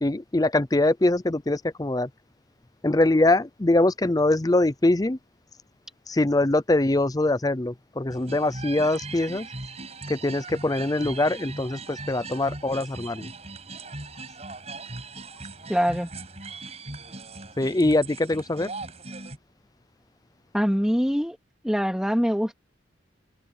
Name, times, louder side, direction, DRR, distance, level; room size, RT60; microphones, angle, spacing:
voice 1, 0.0-2.1 2.8-5.2 6.1-9.5 10.1-13.3 17.6-18.7, left 2 dB, 20° left, 0.5 m, -23 dB
sound 1, 8.1-19.4, right 3 dB, 35° right, 6.0 m, -39 dB
voice 2, 15.7-16.1 20.5-21.4 21.6-22.5, equal, 5° right, 2.4 m, -23 dB
head